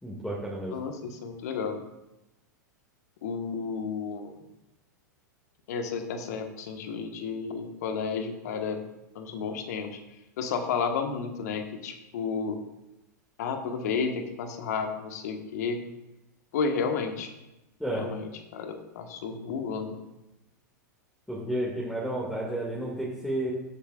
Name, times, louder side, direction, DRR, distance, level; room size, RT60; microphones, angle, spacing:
voice 1, 0.0-0.8 17.8-18.1 21.3-23.5, right 1 dB, 5° left, -4 dB, 2.1 m, -31 dB
voice 2, 0.7-1.8 3.2-4.4 5.7-8.8 9.1-10.0 10.4-12.6 13.4-15.8 16.5-17.3 17.9-20.0, left 5 dB, 60° left, 6 dB, 1.4 m, -32 dB
16.0 x 8.2 x 2.5 m, 0.97 s
figure-of-eight pair, 95°, 10 cm